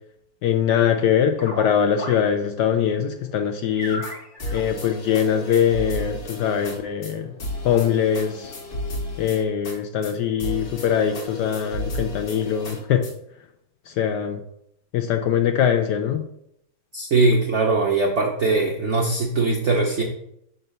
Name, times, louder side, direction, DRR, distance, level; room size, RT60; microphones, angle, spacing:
voice 1, 0.4-4.0 4.5-7.3 7.6-8.5 9.2-13.0 13.9-14.4 14.9-16.2, left 8 dB, 75° left, 6 dB, 1.0 m, -22 dB
sound 1, 0.9-2.4 2.6-2.8 3.3-3.4 3.6-6.6 6.9-7.0 7.2-8.5, left 1 dB, 35° left, 0.9 m, -37 dB
sound 2, 3.8-4.1 4.4-6.8 7.0-7.1 7.4-9.8 10.0-10.1 10.4-13.1, left 1 dB, 50° left, 1.7 m, -33 dB
voice 2, 16.9-20.0, right 3 dB, 80° right, 0 dB, 0.6 m, -21 dB
5.6 x 4.0 x 5.3 m, 0.76 s
omnidirectional pair, 2.2 m